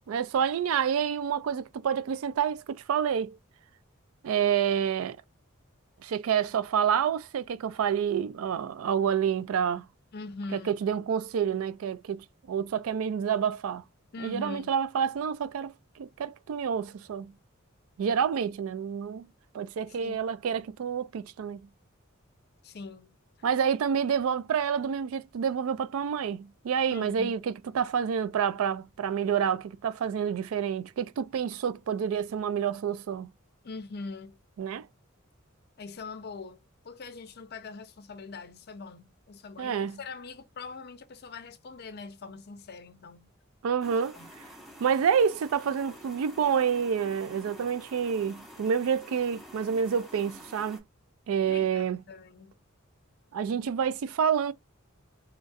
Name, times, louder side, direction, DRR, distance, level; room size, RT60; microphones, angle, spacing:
voice 1, 0.1-3.4 4.2-5.2 6.0-9.9 10.5-13.8 14.2-17.3 18.0-19.3 19.5-21.7 23.4-33.3 34.6-34.9 39.6-40.0 43.6-44.1 44.8-50.8 51.3-52.0 53.3-54.5, right 7 dB, 80° right, 0.3 m, -28 dB
voice 2, 10.1-10.7 14.1-14.7 19.9-20.2 22.6-23.2 26.9-27.3 33.6-34.4 35.8-43.3 44.2-44.3 51.5-52.5, left 3 dB, 50° left, 0.6 m, -42 dB
sound 1, 43.8-50.8, equal, ahead, 0.9 m, -49 dB
3.0 x 2.5 x 2.4 m
head